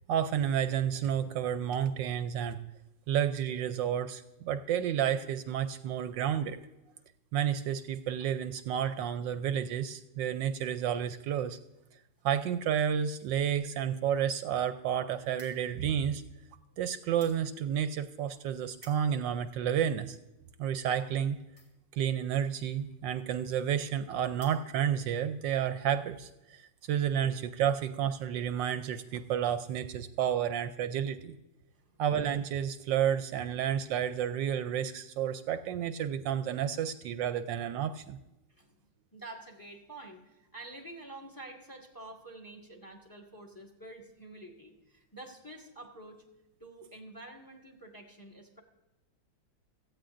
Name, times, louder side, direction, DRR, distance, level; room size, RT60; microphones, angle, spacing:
voice 1, 0.1-2.6 3.1-6.6 7.3-11.6 12.2-16.2 16.8-20.2 20.6-21.4 21.9-31.4 32.0-38.2, right 9 dB, 75° right, 10 dB, 1.2 m, -31 dB
sound 1, 15.3-25.6, left 2 dB, 55° left, 2.8 m, -61 dB
voice 2, 39.1-46.2 46.6-48.6, right 2 dB, 10° left, 1 dB, 1.5 m, -48 dB
17.0 x 14.0 x 2.5 m, 0.99 s
omnidirectional pair, 2.1 m